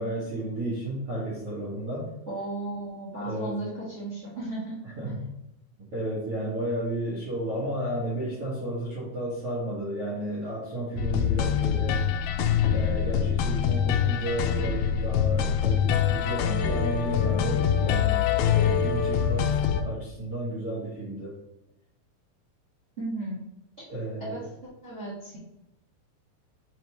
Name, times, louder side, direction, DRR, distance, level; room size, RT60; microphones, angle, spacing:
voice 1, 0.0-2.1 3.2-3.5 5.0-5.3 5.9-12.0 12.7-21.4 23.9-24.3, right 1 dB, 85° right, -8 dB, 1.2 m, -32 dB
voice 2, 2.3-4.8 5.0-5.1 23.0-23.4 24.2-24.4 24.8-25.4, right 2 dB, 50° right, -9 dB, 0.7 m, -35 dB
sound 1, 11.0-19.8, left 8 dB, 90° left, 2.5 m, -24 dB
6.4 x 5.1 x 3.1 m, 0.86 s
omnidirectional pair, 5.8 m